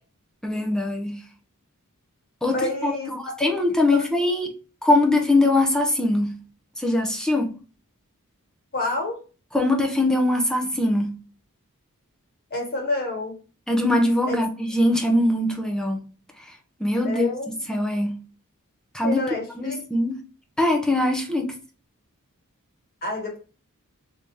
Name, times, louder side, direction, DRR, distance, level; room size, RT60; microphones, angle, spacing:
voice 1, 0.4-1.2 2.4-2.6 2.8-2.9 3.4-4.5 4.8-6.3 6.8-7.5 9.5-11.1 13.7-16.0 16.8-18.2 18.9-19.2 19.6-20.2 20.6-21.5, left 1 dB, 5° left, 0.5 m, -22 dB
voice 2, 2.5-3.1 3.4-3.5 3.9-4.1 8.7-9.2 12.5-13.3 14.3-14.4 17.0-17.5 19.0-19.8 23.0-23.4, left 2 dB, 45° left, 1.2 m, -28 dB
3.4 x 2.7 x 3.1 m
head